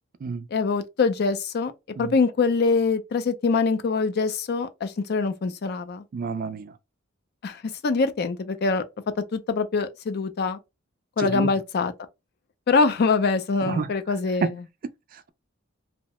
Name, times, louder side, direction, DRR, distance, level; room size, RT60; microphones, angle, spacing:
voice 1, 0.5-1.7 2.0-6.0 7.4-8.8 9.3-10.6 11.2-11.9 12.7-14.6, left 4 dB, 50° left, 0.4 m, -24 dB
voice 2, 6.1-6.7 11.2-11.5 13.7-13.9 14.4-14.5 15.1-15.3, right 4 dB, 45° right, 0.3 m, -28 dB
2.7 x 2.1 x 2.9 m
head